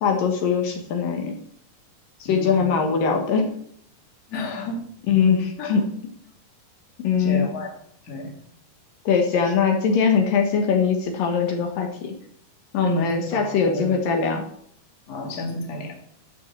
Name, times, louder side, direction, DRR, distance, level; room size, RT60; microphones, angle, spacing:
voice 1, 0.0-1.3 2.2-3.5 5.1-5.9 7.0-7.5 9.1-12.1 12.7-14.4, left 6 dB, 70° left, 3 dB, 3.0 m, -21 dB
voice 2, 2.2-2.7 4.3-4.8 5.6-5.8 7.2-7.7 8.0-8.3 9.4-9.5 12.8-14.0 15.1-16.0, left 2 dB, 30° left, 1 dB, 2.3 m, -31 dB
12.0 x 6.4 x 7.3 m, 0.66 s
omnidirectional pair, 4.3 m